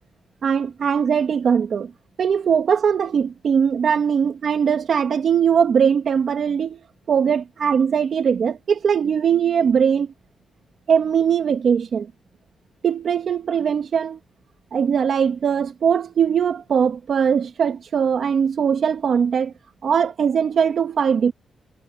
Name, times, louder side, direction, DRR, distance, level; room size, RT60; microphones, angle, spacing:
voice 1, 0.4-1.9 2.2-6.8 7.1-10.1 10.9-12.1 12.8-14.2 14.7-19.5 19.8-21.3, right 7 dB, 55° right, 2.4 m, -20 dB
cardioid pair, 135°, 0 cm